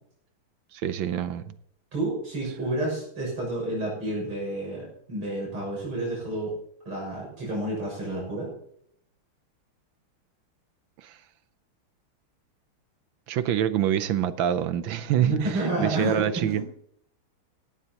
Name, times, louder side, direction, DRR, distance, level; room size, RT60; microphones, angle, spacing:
voice 1, 0.7-1.5 11.0-11.2 13.3-16.6, right 10 dB, 70° right, 13 dB, 1.4 m, -26 dB
voice 2, 1.9-6.5 6.9-8.5 15.2-16.7, right 2 dB, 85° right, -4 dB, 7.6 m, -29 dB
18.5 x 16.5 x 2.9 m, 0.69 s
omnidirectional pair, 2.3 m